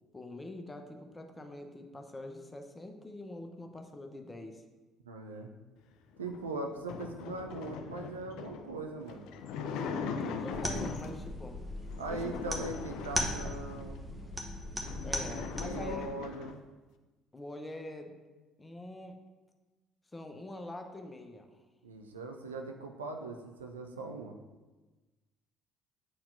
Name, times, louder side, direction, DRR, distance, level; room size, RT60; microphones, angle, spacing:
voice 1, 0.1-4.6 10.2-11.6 12.1-12.7 15.0-16.1 17.3-18.1 18.6-19.2 20.1-21.6, left 1 dB, 20° left, 4 dB, 0.8 m, -44 dB
voice 2, 5.0-5.5 6.2-9.3 12.0-14.0 15.6-16.6 21.8-24.4, right 2 dB, 80° right, 4 dB, 0.4 m, -40 dB
sound 1, 6.2-11.3 11.9-14.0 14.4-14.5 14.7-16.6, left 5 dB, 60° left, 0.4 m, -40 dB
sound 2, 10.5-15.9, equal, 10° right, 1.0 m, -38 dB
8.4 x 4.4 x 2.6 m, 1.2 s
figure-of-eight pair, 50°, 0 cm